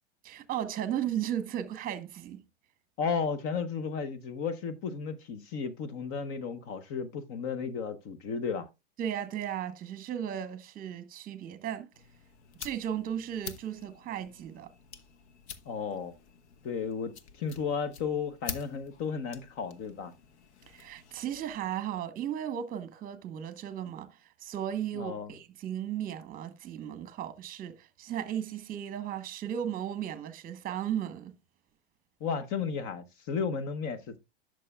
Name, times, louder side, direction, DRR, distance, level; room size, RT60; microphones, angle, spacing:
voice 1, 0.2-2.4 9.0-11.9 12.6-14.7 20.7-31.4, right 10 dB, 25° right, 1.1 m, -35 dB
voice 2, 3.0-8.7 15.6-16.1 16.6-20.1 25.0-25.3 32.2-34.2, left 6 dB, 40° left, 0.9 m, -34 dB
sound 1, 11.9-21.7, left 7 dB, 75° left, 1.3 m, -47 dB
10.5 x 6.3 x 2.3 m
hypercardioid pair, 125°, 34 cm